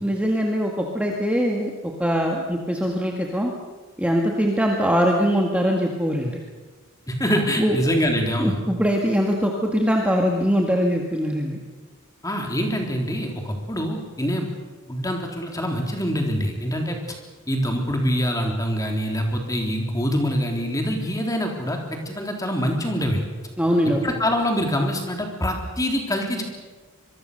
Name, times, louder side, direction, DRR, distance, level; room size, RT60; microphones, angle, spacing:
voice 1, 0.0-1.7 2.0-3.5 4.0-6.4 7.6-7.8 8.4-11.6 23.6-24.1, equal, 5° right, 0 dB, 1.9 m, -22 dB
voice 2, 7.1-8.6 12.2-14.5 14.9-17.2 17.5-23.2 24.0-26.4, equal, 15° left, 2 dB, 3.6 m, -25 dB
25.5 x 23.0 x 6.7 m, 1.4 s
head